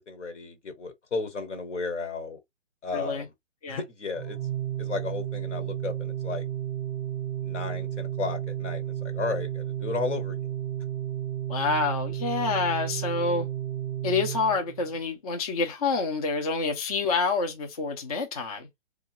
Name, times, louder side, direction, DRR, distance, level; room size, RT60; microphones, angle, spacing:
voice 1, 0.0-2.4 2.8-3.3 3.7-4.4 4.8-6.5 7.4-10.5, left 4 dB, 70° left, 1.4 m, -34 dB
voice 2, 2.9-3.2 3.6-3.8 11.5-13.5 14.0-18.7, left 4 dB, 30° left, 0.6 m, -27 dB
Organ, 4.1-15.0, right 11 dB, 10° right, 0.6 m, -33 dB
3.4 x 2.4 x 2.9 m
hypercardioid pair, 155°, 37 cm